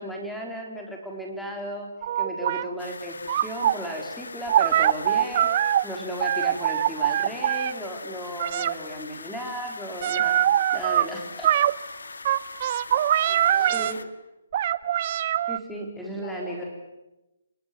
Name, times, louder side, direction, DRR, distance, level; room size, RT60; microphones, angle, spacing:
voice 1, 0.0-1.9 2.2-11.5 13.7-14.0 15.5-16.6, equal, ahead, 0 dB, 4.3 m, -35 dB
sound 1, 2.0-2.6 3.3-3.7 4.5-5.8 6.2-7.7 8.4-8.7 10.0-11.0 11.4-11.7 12.2-13.9 14.5-15.6, right 11 dB, 40° right, 0.9 m, -23 dB
sound 2, 2.8-14.0, left 4 dB, 90° left, 1.9 m, -41 dB
voice 2, 11.0-11.6 12.8-13.0 13.3-14.1 16.0-16.6, left 3 dB, 40° left, 3 dB, 4.5 m, -43 dB
29.0 x 19.5 x 9.4 m, 0.98 s
hypercardioid pair, 160°, 0 cm